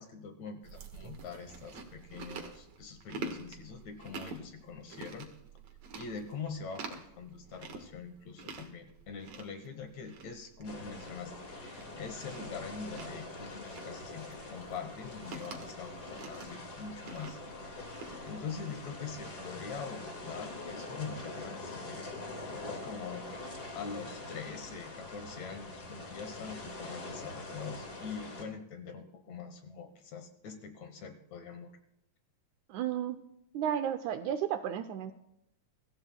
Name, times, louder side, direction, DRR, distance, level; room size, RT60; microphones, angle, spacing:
voice 1, 0.0-5.3 5.9-11.3 11.6-17.4 18.2-31.7, left 5 dB, 65° left, 7 dB, 2.1 m, -44 dB
Chewing mastication, 0.6-19.6, right 4 dB, 60° right, 2.5 m, -48 dB
sound 1, 10.6-28.4, left 2 dB, 35° left, 2.0 m, -44 dB
voice 2, 32.7-33.2 33.5-35.1, right 9 dB, 80° right, 9 dB, 1.8 m, -33 dB
24.0 x 14.5 x 2.2 m, 0.81 s
omnidirectional pair, 3.9 m